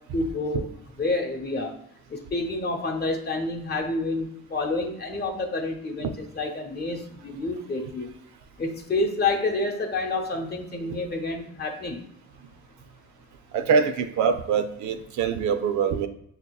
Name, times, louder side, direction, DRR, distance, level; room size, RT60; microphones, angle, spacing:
voice 1, 0.1-0.7 1.0-1.8 2.1-8.1 8.6-12.0, left 2 dB, 35° left, 3 dB, 0.8 m, -28 dB
voice 2, 13.5-16.1, right 6 dB, 70° right, 9 dB, 0.5 m, -24 dB
5.9 x 2.8 x 2.3 m, 0.71 s
cardioid pair, 90°, 30 cm